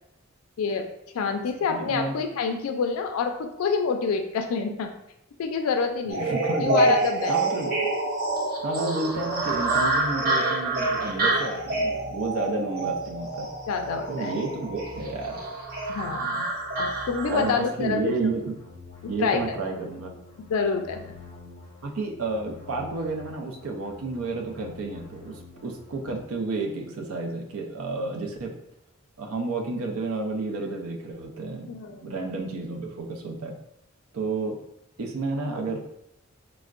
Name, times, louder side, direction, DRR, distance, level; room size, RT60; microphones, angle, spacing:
voice 1, 0.6-0.9 1.1-4.9 5.4-6.2 6.6-7.4 13.7-14.4 15.9-16.4 16.8-18.1 19.0-19.4 20.5-21.2 31.7-32.2, left 5 dB, 90° left, 5 dB, 0.3 m, -27 dB
voice 2, 1.7-2.1 6.1-6.9 7.3-7.7 8.6-13.5 14.1-15.4 17.3-18.5 19.1-20.1 21.8-28.5 29.2-33.6 34.1-34.6 35.0-35.8, right 3 dB, 85° right, 1 dB, 0.5 m, -31 dB
sound 1, 6.1-17.6, right 2 dB, 45° right, 0.7 m, -27 dB
sound 2, 9.1-26.2, left 2 dB, 35° left, 0.6 m, -47 dB
4.3 x 2.1 x 2.4 m, 0.81 s
head